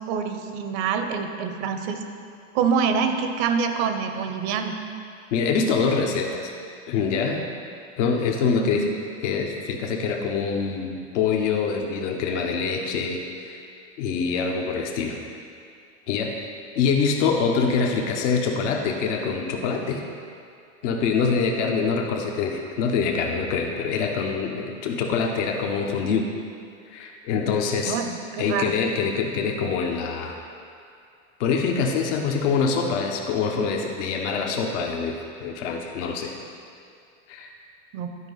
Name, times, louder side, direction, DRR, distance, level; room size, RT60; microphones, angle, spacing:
voice 1, 0.1-2.0 2.5-4.7 8.5-8.9 27.8-28.8 37.9-38.1, right 6 dB, 50° right, 6 dB, 0.9 m, -26 dB
voice 2, 5.3-6.5 6.9-7.4 8.0-8.9 9.2-13.6 14.0-15.2 16.1-20.0 20.8-26.3 26.9-28.0 28.4-30.4 31.4-36.3 37.3-37.5, left 5 dB, 65° left, 2 dB, 1.1 m, -25 dB
11.5 x 5.0 x 4.0 m, 2.4 s
hypercardioid pair, 100°, 38 cm